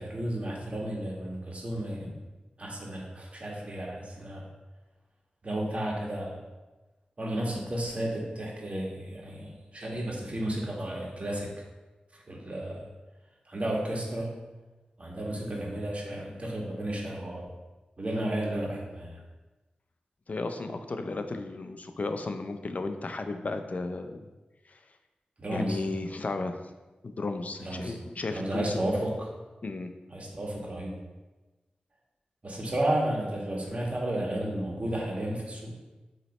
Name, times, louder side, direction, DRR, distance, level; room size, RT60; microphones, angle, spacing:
voice 1, 0.0-2.1 2.6-4.4 5.4-6.4 7.2-11.5 12.3-12.8 13.5-14.3 15.0-17.5 18.0-19.2 25.4-25.8 27.6-27.9 28.3-29.3 30.1-30.9 32.4-35.7, right 1 dB, 45° right, -2 dB, 1.7 m, -32 dB
voice 2, 20.3-24.2 24.7-24.8 25.5-26.6 27.0-28.8 29.6-29.9, left 3 dB, 55° left, 7 dB, 0.6 m, -34 dB
7.9 x 3.2 x 4.2 m, 1.2 s
cardioid pair, 50°, 3 cm